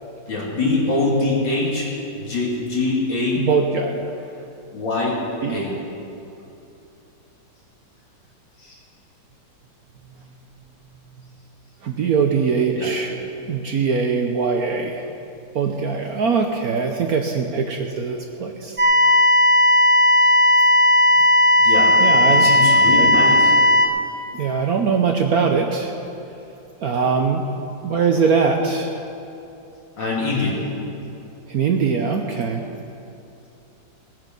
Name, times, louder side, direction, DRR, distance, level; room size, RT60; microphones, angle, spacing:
voice 1, 0.3-3.4 4.7-5.2 5.5-5.8 8.6-8.8 12.8-12.9 21.6-22.0 22.3-23.5 30.0-30.6, left 2 dB, 70° left, -4 dB, 3.4 m, -23 dB
voice 2, 3.4-4.0 5.4-5.6 11.8-13.1 13.5-15.1 15.5-18.8 22.0-22.5 23.0-23.1 24.3-25.9 26.8-27.4 27.8-28.9 31.5-32.6, right 5 dB, 60° right, 3 dB, 1.0 m, -21 dB
sound 1, 18.8-23.9, left 1 dB, 30° right, 0.6 m, -15 dB
19.5 x 9.1 x 5.3 m, 2.8 s
omnidirectional pair, 2.2 m